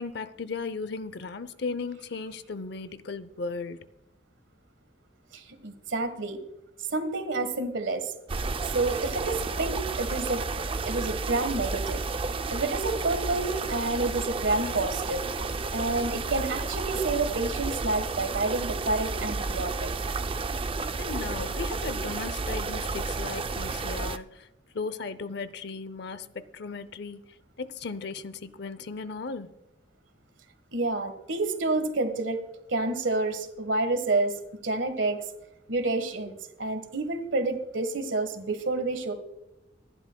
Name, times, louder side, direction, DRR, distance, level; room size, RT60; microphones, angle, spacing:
voice 1, 0.0-3.9 21.0-24.5 24.7-27.2 27.6-29.5, left 4 dB, 65° left, 0.6 m, -36 dB
voice 2, 5.3-6.4 6.9-8.1 8.6-10.4 10.9-12.0 12.5-15.3 15.7-19.9 30.7-32.4 32.7-35.2 35.7-39.1, right 2 dB, 90° right, 1.5 m, -29 dB
sound 1, 8.3-24.2, right 3 dB, 30° right, 0.5 m, -32 dB
25.0 x 12.0 x 2.3 m
head